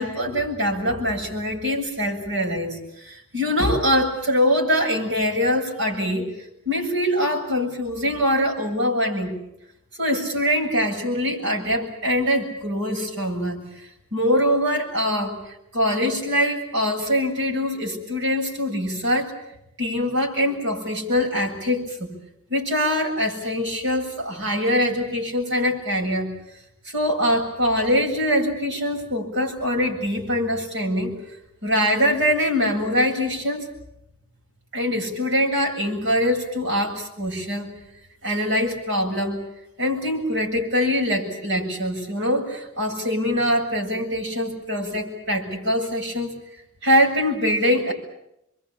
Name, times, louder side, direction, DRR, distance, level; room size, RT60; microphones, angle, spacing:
voice 1, 0.0-6.3 6.7-9.3 10.0-19.3 19.8-22.1 22.5-26.3 26.8-31.2 31.6-33.7 34.7-37.7 38.2-39.4 39.8-46.3 46.8-47.9, equal, 55° right, 0 dB, 7.8 m, -23 dB
27.5 x 23.0 x 8.8 m, 0.84 s
head